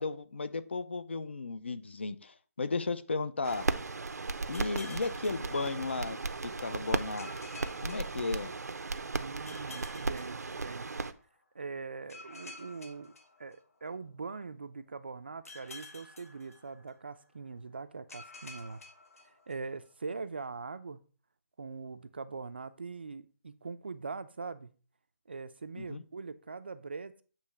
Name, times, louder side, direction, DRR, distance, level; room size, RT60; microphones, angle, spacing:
voice 1, 0.0-3.7 4.5-6.2 6.4-7.3 7.8-8.5 25.8-26.0, left 3 dB, 45° left, 0.6 m, -34 dB
sound 1, 3.4-11.1, right 3 dB, 85° right, 0.8 m, -36 dB
sound 2, 4.5-6.3 7.2-8.9 9.5-11.2 12.1-14.1 15.4-17.2 18.1-19.9, left 3 dB, 65° left, 1.8 m, -51 dB
voice 2, 9.2-10.9 11.5-13.1 13.4-18.8 19.2-21.0 21.6-24.7 25.3-27.2, right 4 dB, 40° right, 0.5 m, -42 dB
8.5 x 3.1 x 6.1 m
hypercardioid pair, 180°, 9 cm